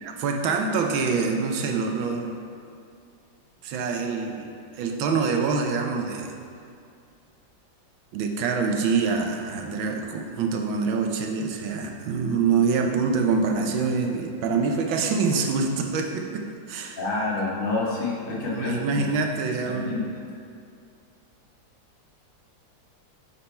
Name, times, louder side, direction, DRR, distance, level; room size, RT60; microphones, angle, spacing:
voice 1, 0.0-2.4 3.6-6.3 8.1-17.0 18.3-20.1, right 5 dB, 85° right, 3 dB, 1.5 m, -25 dB
voice 2, 17.0-19.0 19.6-20.3, left 3 dB, 35° left, -5 dB, 1.3 m, -28 dB
9.6 x 4.5 x 4.4 m, 2.4 s
omnidirectional pair, 2.1 m